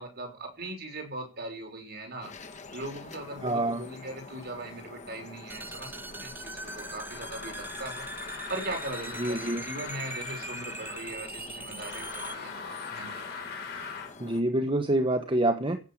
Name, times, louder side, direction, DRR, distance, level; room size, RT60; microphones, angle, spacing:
voice 1, 0.0-2.3 2.7-13.2, right 1 dB, 50° right, 6.0 m, -40 dB
sound 1, 2.2-14.4, left 3 dB, 35° left, 1.7 m, -47 dB
voice 2, 3.4-3.8 9.2-9.6 14.2-15.8, right 1 dB, 25° right, 1.1 m, -26 dB
sound 2, 5.5-12.4, right 2 dB, 10° right, 0.7 m, -41 dB
sound 3, 6.5-11.2 11.7-14.2, left 5 dB, 50° left, 3.9 m, -41 dB
16.0 x 7.5 x 8.6 m
head